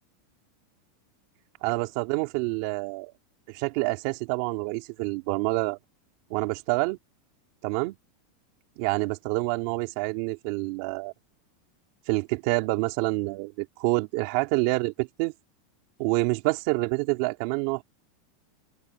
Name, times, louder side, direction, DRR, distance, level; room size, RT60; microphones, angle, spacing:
voice 1, 1.6-3.1 3.5-5.8 6.3-7.0 7.6-8.0 8.8-11.1 12.1-15.3 16.0-17.8, right 24 dB, 50° right, 2.5 m, -27 dB
open air
supercardioid pair, 160°, 0 cm